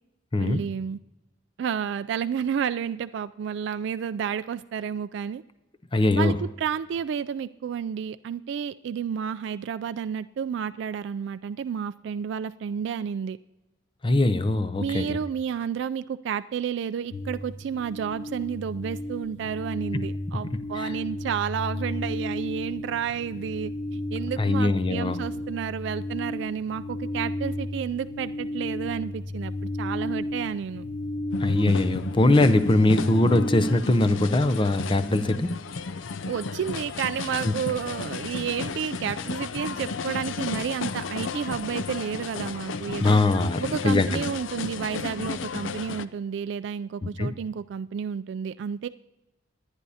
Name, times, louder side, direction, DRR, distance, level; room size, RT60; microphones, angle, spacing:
voice 1, 0.4-1.0 1.6-5.4 6.2-13.4 14.8-30.8 36.3-43.2 43.6-48.9, right 7 dB, 65° right, 11 dB, 0.3 m, -31 dB
voice 2, 5.9-6.3 14.0-15.2 20.8-20.9 24.4-25.2 31.4-35.5 37.4-37.5 43.0-44.2 47.0-47.3, left 2 dB, 25° left, 11 dB, 0.6 m, -22 dB
sound 1, 17.1-33.7, left 1 dB, 65° left, 1.1 m, -33 dB
sound 2, 31.3-46.0, left 4 dB, 80° left, 0.5 m, -33 dB
25.0 x 9.8 x 2.8 m, 1.0 s
head